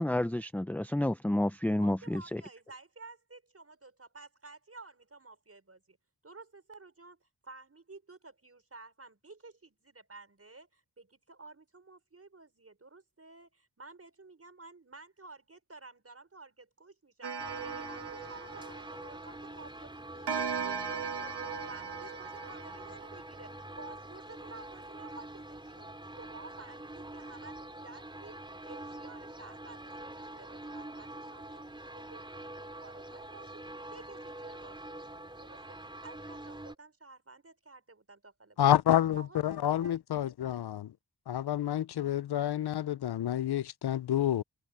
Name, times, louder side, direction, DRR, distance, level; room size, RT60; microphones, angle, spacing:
voice 1, 0.0-2.2, left 1 dB, 5° left, 0.6 m, -29 dB
voice 2, 1.8-6.0 6.2-17.4 17.6-33.6 33.9-38.7 39.1-40.2 40.5-40.6, right 3 dB, 35° right, 5.5 m, -53 dB
Clock, 17.2-19.5 20.3-23.7, right 5 dB, 85° right, 1.5 m, -38 dB
sound 1, 17.4-36.8, right 1 dB, 10° right, 3.2 m, -45 dB
voice 3, 38.6-40.9 41.3-44.4, left 11 dB, 75° left, 0.6 m, -28 dB
cardioid pair, 65°, 39 cm